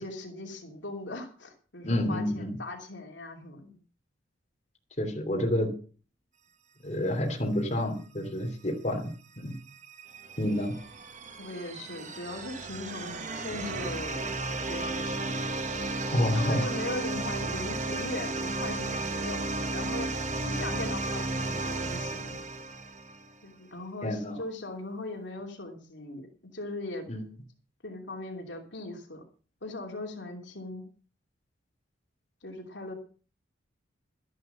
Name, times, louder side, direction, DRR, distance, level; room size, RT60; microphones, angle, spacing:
voice 1, 0.0-3.8 11.4-14.4 14.7-15.5 16.2-19.4 19.7-22.4 23.4-26.3 26.5-27.1 27.8-29.3 29.6-30.8 32.4-32.9, left 2 dB, 65° left, 2 dB, 2.9 m, -39 dB
voice 2, 1.8-2.6 5.0-5.7 6.8-9.0 9.4-9.6 10.4-10.7 16.1-16.7 24.0-24.4 27.1-27.2, left 1 dB, 35° left, 2 dB, 3.0 m, -28 dB
sound 1, 9.5-23.3, right 2 dB, 40° right, 1.2 m, -34 dB
13.0 x 11.0 x 5.6 m, 0.38 s
head